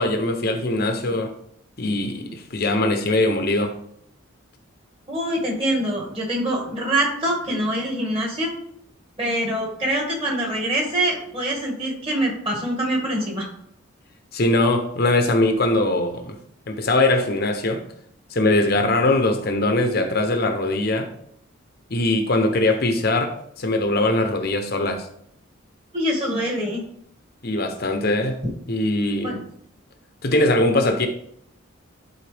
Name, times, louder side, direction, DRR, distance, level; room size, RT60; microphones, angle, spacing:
voice 1, 0.0-1.3 1.8-3.7 14.3-16.4 16.7-17.8 18.3-21.1 21.9-23.3 23.6-25.1 27.4-28.4 28.7-29.4 30.2-31.1, left 2 dB, 45° left, 5 dB, 0.8 m, -21 dB
voice 2, 5.1-8.5 9.2-13.5 25.9-26.8 29.2-29.4, right 1 dB, 25° right, -1 dB, 2.1 m, -24 dB
11.5 x 4.3 x 3.5 m, 0.69 s
head